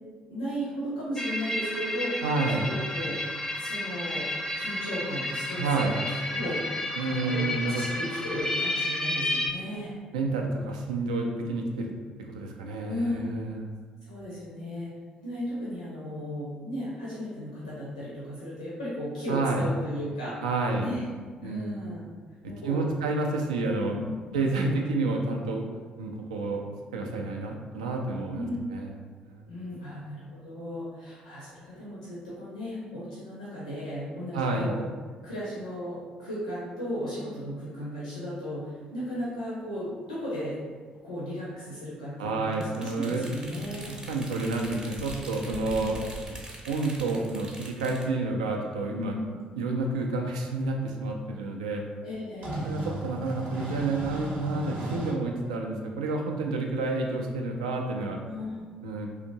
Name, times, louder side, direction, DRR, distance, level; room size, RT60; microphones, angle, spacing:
voice 1, 0.3-3.3 3.6-4.3 4.6-6.6 7.1-9.9 12.9-13.4 14.0-14.9 15.2-20.4 20.8-21.0 21.4-22.1 22.4-22.9 23.9-24.2 28.3-28.6 29.5-34.9 35.2-40.6 41.0-43.9 45.5-46.0 48.8-49.4 52.0-52.7 58.2-58.7, left 1 dB, 80° left, -8 dB, 0.5 m, -35 dB
sound 1, 1.2-9.5, left 1 dB, 15° left, 0.4 m, -32 dB
voice 2, 2.2-2.6 5.6-5.9 7.0-7.8 10.1-11.9 12.3-13.6 19.3-19.6 20.4-20.9 21.4-21.7 22.6-24.0 24.3-25.7 26.0-26.7 26.9-28.5 28.7-28.9 29.2-29.4 34.3-34.7 42.2-43.2 43.9-46.0 46.7-49.2 49.6-51.8 52.6-58.2 58.8-59.1, right 3 dB, 75° right, 1 dB, 0.3 m, -29 dB
sound 2, 38.9-39.0 39.5-39.6 42.5-42.6 42.8-42.9 44.0-44.4 45.8-45.9 46.2-46.3 47.6-47.7 49.3-49.4 50.3-50.4 50.9-51.1 52.4-55.1, right 1 dB, 55° right, 0.7 m, -35 dB
sound 3, 42.5-48.1, right 1 dB, 20° right, 0.7 m, -43 dB
2.9 x 2.5 x 2.7 m, 1.5 s
figure-of-eight pair, 45°, 4 cm